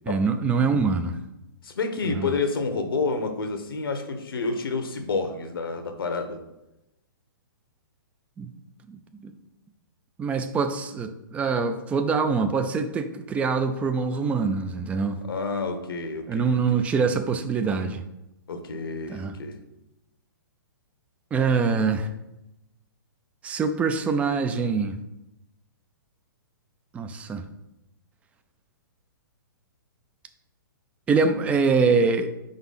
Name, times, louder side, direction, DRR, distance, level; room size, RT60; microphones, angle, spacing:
voice 1, 0.1-1.2 2.1-2.4 8.4-8.5 8.9-9.3 10.2-15.2 16.3-18.0 19.1-19.4 21.3-22.1 23.4-25.0 26.9-27.4 31.1-32.3, right 5 dB, 10° right, 8 dB, 0.3 m, -24 dB
voice 2, 1.6-6.4 15.2-16.6 18.5-19.6, left 4 dB, 80° left, 7 dB, 1.0 m, -29 dB
4.9 x 4.0 x 5.6 m, 0.92 s
hypercardioid pair, 140°, 12 cm